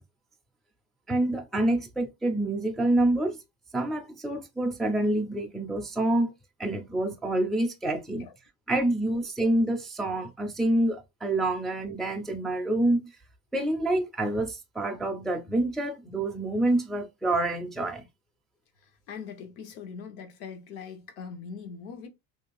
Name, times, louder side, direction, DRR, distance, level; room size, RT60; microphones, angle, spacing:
voice 1, 1.1-3.4 3.7-6.3 6.6-8.3 8.7-13.1 13.5-18.0, right 1 dB, ahead, 0.3 m, -27 dB
voice 2, 19.1-22.1, left 6 dB, 75° left, 1.0 m, -41 dB
2.6 x 2.3 x 3.0 m
supercardioid pair, 105°, 41 cm